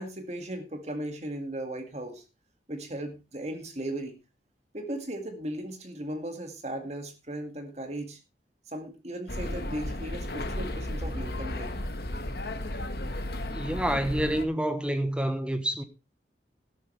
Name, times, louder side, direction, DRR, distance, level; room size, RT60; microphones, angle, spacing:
voice 1, 0.0-2.2 2.7-4.2 4.7-8.2 8.7-11.8, right 1 dB, 40° right, 2.1 m, -37 dB
sound 1, 9.3-14.4, left 1 dB, 60° left, 1.4 m, -34 dB
voice 2, 13.5-15.8, right 1 dB, 5° right, 1.1 m, -28 dB
12.0 x 12.0 x 3.3 m
head